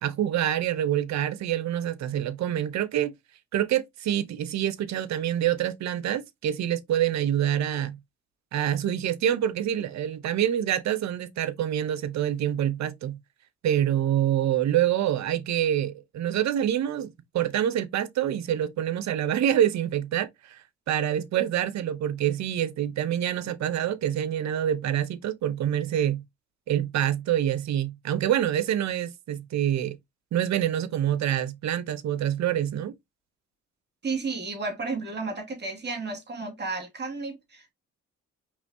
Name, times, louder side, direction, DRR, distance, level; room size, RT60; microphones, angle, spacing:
voice 1, 0.0-3.1 3.5-8.0 8.5-13.2 13.6-20.6 20.9-26.2 26.7-30.0 30.3-32.9, right 11 dB, 65° right, 0.8 m, -26 dB
voice 2, 34.0-37.7, right 3 dB, 35° right, 2.3 m, -32 dB
5.0 x 3.3 x 2.7 m
cardioid pair, 90°, 30 cm